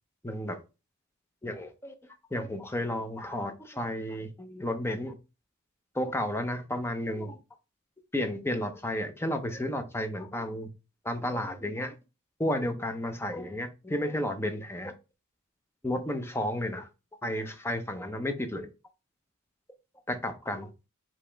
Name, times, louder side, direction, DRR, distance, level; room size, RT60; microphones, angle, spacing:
voice 1, 0.2-0.6 1.4-1.9 2.3-5.1 5.9-7.4 8.1-10.7 11.0-11.9 12.4-14.9 15.8-16.9 17.2-18.7 20.1-20.9, left 1 dB, 10° left, 0.6 m, -32 dB
4.9 x 2.9 x 3.3 m
head